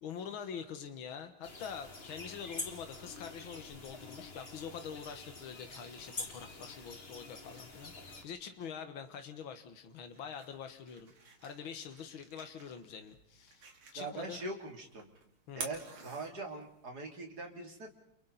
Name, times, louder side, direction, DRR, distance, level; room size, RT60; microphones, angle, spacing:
voice 1, 0.0-11.1 11.4-13.7 13.9-14.4 15.5-15.6, left 7 dB, 70° left, 7 dB, 2.3 m, -45 dB
sound 1, 1.4-8.2, left 3 dB, 30° left, 2.1 m, -47 dB
sound 2, 9.9-16.9, right 4 dB, 75° right, 3.4 m, -50 dB
voice 2, 14.0-15.1 15.6-17.9, right 2 dB, 45° right, 2 dB, 3.7 m, -42 dB
29.5 x 29.0 x 4.2 m, 0.72 s
omnidirectional pair, 2.3 m